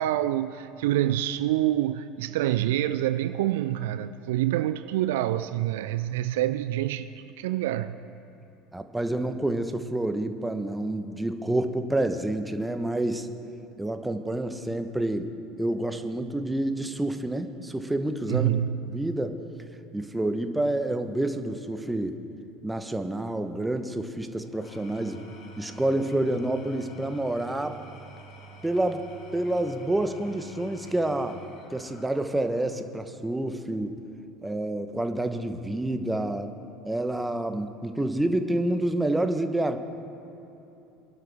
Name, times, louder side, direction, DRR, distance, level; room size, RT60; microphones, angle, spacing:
voice 1, 0.0-8.0 18.3-18.8, right 13 dB, 70° right, 0.4 m, -26 dB
voice 2, 8.7-13.3 13.8-15.3 15.6-18.5 18.9-19.3 19.9-22.2 22.6-25.2 25.6-27.8 28.6-29.0 29.3-31.4 31.7-33.9 34.4-36.5 36.8-39.8, right 1 dB, 10° right, 1.1 m, -28 dB
Engine / Tools, 24.4-32.8, right 2 dB, 50° left, 2.1 m, -48 dB
24.0 x 11.5 x 3.6 m
figure-of-eight pair, 70°, 0 cm